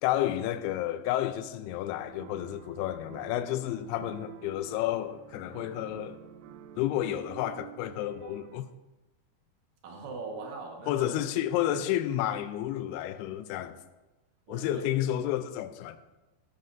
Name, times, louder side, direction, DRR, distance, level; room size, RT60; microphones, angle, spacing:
voice 1, 0.0-6.2 6.8-8.7 10.9-13.8 14.5-16.0, left 12 dB, 85° left, 2.6 m, -31 dB
sound 1, 2.0-8.6, right 11 dB, 80° right, 2.5 m, -48 dB
voice 2, 9.8-11.4 11.7-11.9 14.5-14.9, right 3 dB, 65° right, 2.9 m, -41 dB
14.0 x 11.5 x 2.6 m
omnidirectional pair, 4.7 m